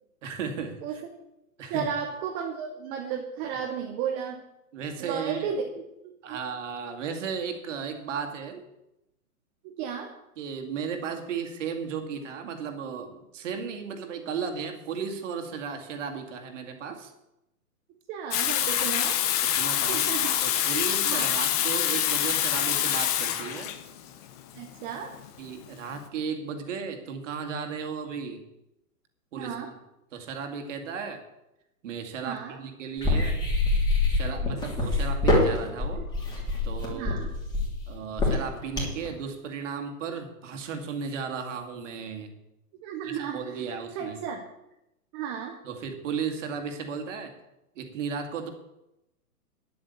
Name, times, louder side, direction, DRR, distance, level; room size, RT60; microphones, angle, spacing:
voice 1, 0.2-1.0 1.6-1.9 4.7-5.5 6.2-8.6 10.4-17.1 19.4-20.1 20.4-23.7 25.4-28.4 29.3-29.6 30.1-31.2 31.8-33.4 34.1-36.1 36.6-37.2 37.9-42.3 43.0-44.2 45.6-47.4 47.8-48.5, right 6 dB, 50° right, 6 dB, 2.3 m, -35 dB
voice 2, 1.7-4.4 5.0-5.6 6.0-6.4 9.6-10.1 18.1-19.2 19.9-20.4 21.1-21.3 24.5-25.1 29.4-29.7 32.2-32.6 36.9-37.3 42.8-43.6 43.9-44.4 45.1-45.6, right 7 dB, 15° right, 2 dB, 0.6 m, -33 dB
Water tap faucet / Sink (filling or washing), 18.3-26.0, left 11 dB, 25° left, 0.8 m, -26 dB
sound 1, 33.0-39.1, left 2 dB, 10° left, 3.0 m, -25 dB
10.0 x 8.5 x 8.2 m, 0.89 s
hypercardioid pair, 150°, 46 cm